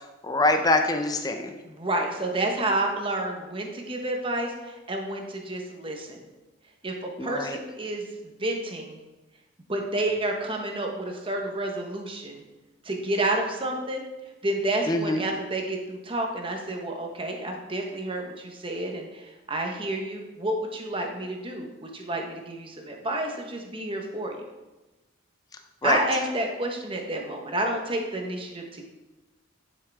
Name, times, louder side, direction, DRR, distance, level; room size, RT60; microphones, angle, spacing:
voice 1, 0.2-1.5 7.2-7.6 14.9-15.2 25.8-26.0, left 2 dB, 20° left, 5 dB, 0.6 m, -24 dB
voice 2, 1.6-6.2 6.8-9.0 9.7-12.4 12.8-14.0 14.4-24.4 25.8-28.9, right 1 dB, 25° right, 2 dB, 1.2 m, -30 dB
11.0 x 6.5 x 3.6 m, 1.1 s
head